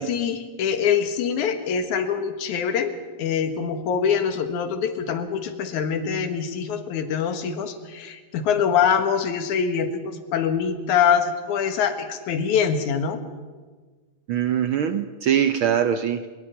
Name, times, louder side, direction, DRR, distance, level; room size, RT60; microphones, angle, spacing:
voice 1, 0.0-2.9 3.2-13.2, left 7 dB, 90° left, 9 dB, 2.9 m, -24 dB
voice 2, 14.3-16.3, right 9 dB, 80° right, 10 dB, 1.1 m, -22 dB
23.0 x 22.5 x 5.7 m, 1.4 s
omnidirectional pair, 3.3 m